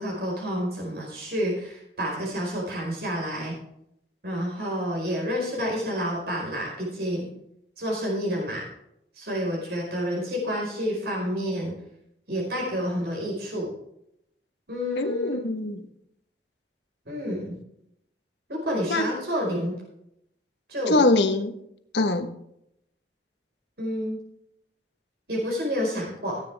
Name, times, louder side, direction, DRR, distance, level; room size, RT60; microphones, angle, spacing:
voice 1, 0.0-3.5 4.2-7.3 7.8-8.6 9.1-11.7 12.3-13.7 14.7-15.4 17.0-17.6 18.5-19.7 20.7-21.0 23.8-24.2 25.3-26.4, equal, 70° right, -2 dB, 4.9 m, -29 dB
voice 2, 15.0-15.8 18.9-19.1 20.9-21.5 21.9-22.3, left 2 dB, 90° left, 7 dB, 1.3 m, -23 dB
17.5 x 9.2 x 3.5 m, 0.76 s
head